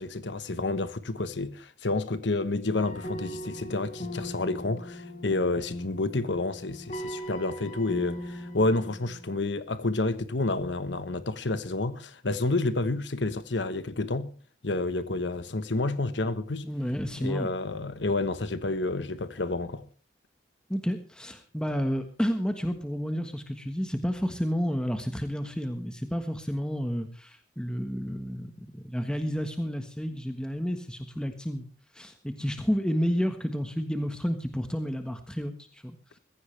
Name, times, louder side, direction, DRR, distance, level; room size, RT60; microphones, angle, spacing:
voice 1, 0.0-14.3 14.6-16.6 17.2-19.8, left 2 dB, 75° left, 1.2 m, -29 dB
sound 1, 2.7-9.4, equal, 40° left, 5.1 m, -40 dB
voice 2, 16.6-17.5 20.7-31.7 31.9-36.0, equal, 5° left, 1.4 m, -31 dB
21.5 x 15.5 x 3.4 m
head